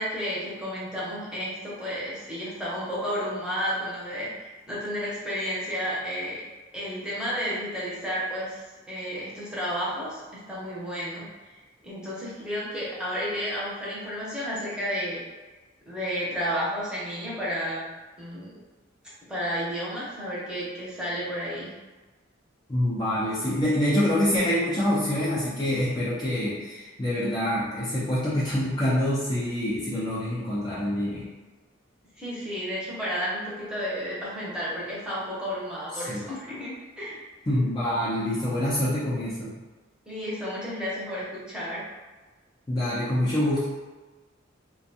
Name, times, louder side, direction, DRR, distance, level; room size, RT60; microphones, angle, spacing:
voice 1, 0.0-6.4 6.7-11.5 11.8-15.2 15.9-17.8 18.2-18.5 19.3-21.7 32.2-37.3 40.1-41.8, equal, 5° right, -9 dB, 0.7 m, -32 dB
voice 2, 22.7-31.3 36.1-36.2 37.5-39.5 42.7-43.6, left 1 dB, 20° left, -9 dB, 0.4 m, -26 dB
2.4 x 2.2 x 2.7 m, 1.3 s
head